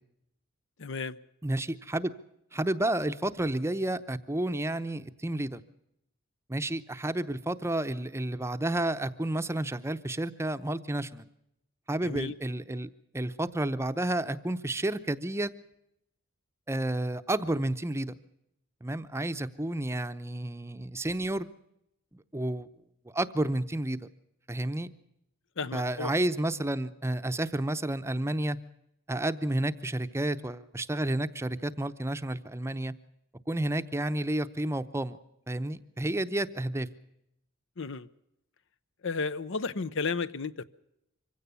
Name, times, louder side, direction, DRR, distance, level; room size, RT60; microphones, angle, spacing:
voice 1, 0.8-1.2 12.0-12.4 25.6-26.1 37.8-38.1 39.0-40.6, left 4 dB, 65° left, 15 dB, 0.8 m, -33 dB
voice 2, 1.4-2.1 2.5-5.6 6.5-11.3 11.9-12.9 13.1-15.5 16.7-18.1 18.8-21.5 22.3-22.7 23.1-24.0 24.5-24.9 25.7-28.6 29.1-32.9 33.5-35.2 35.5-36.9, right 1 dB, 15° right, 10 dB, 0.7 m, -31 dB
25.0 x 16.5 x 6.9 m, 0.79 s
head